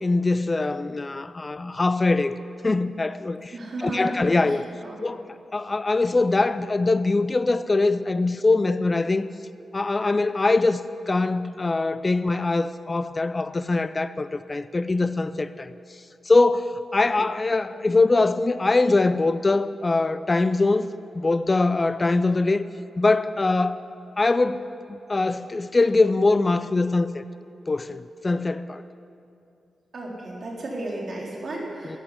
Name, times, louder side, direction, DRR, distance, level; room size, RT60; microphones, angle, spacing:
voice 1, 0.0-2.4 2.6-4.7 5.0-9.3 9.7-10.8 11.1-15.7 16.3-20.9 21.1-22.6 23.0-23.8 24.2-27.2 27.7-28.8 31.8-32.0, left 3 dB, 35° left, 14 dB, 0.5 m, -22 dB
voice 2, 3.5-5.0 29.9-32.0, right 1 dB, 60° right, -2 dB, 3.8 m, -34 dB
14.0 x 8.8 x 9.9 m, 2.7 s
supercardioid pair, 40°, 0 cm